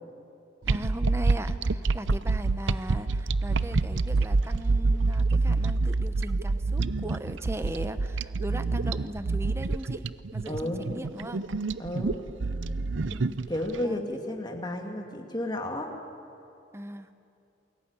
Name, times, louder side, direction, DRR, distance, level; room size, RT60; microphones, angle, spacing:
sound 1, 0.6-13.7, right 3 dB, 75° right, 0.7 m, -27 dB
voice 1, 0.7-10.1 10.3-11.5 13.0-13.4 13.8-14.1 16.7-17.1, right 1 dB, 15° right, 10 dB, 1.0 m, -38 dB
voice 2, 10.5-10.9 11.8-12.2 13.5-15.9, left 1 dB, 20° left, 2 dB, 2.4 m, -32 dB
29.0 x 21.5 x 8.9 m, 2.6 s
head